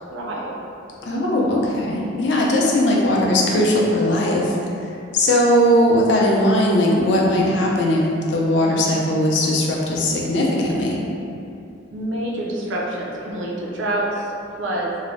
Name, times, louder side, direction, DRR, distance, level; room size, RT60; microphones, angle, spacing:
voice 1, 0.1-0.5 11.9-14.3 14.6-14.9, right 1 dB, 85° right, -3 dB, 0.5 m, -26 dB
voice 2, 1.0-8.0 8.3-11.0, left 1 dB, 65° left, -2 dB, 0.4 m, -19 dB
2.7 x 2.0 x 3.0 m, 2.6 s
head